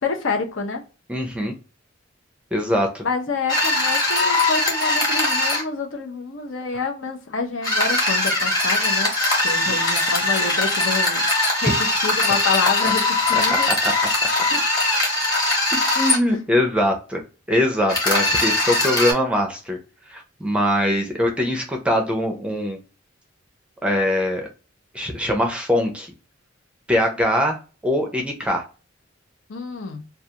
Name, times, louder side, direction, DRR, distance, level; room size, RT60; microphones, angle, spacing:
voice 1, 0.0-0.8 3.0-9.1 9.4-13.7 14.5-14.6 29.5-30.1, left 4 dB, 75° left, 0.7 m, -28 dB
voice 2, 1.1-1.5 2.5-3.0 9.7-9.8 12.8-12.9 13.3-13.4 13.7-13.9 15.9-17.2 17.5-19.8 20.1-22.8 23.8-24.5 24.9-26.1 26.9-27.6 27.8-28.6, left 1 dB, 5° right, 0.4 m, -22 dB
sound 1, 3.5-5.6 7.6-16.2 17.9-19.1, left 2 dB, 20° left, 1.1 m, -21 dB
2.3 x 2.2 x 2.8 m
head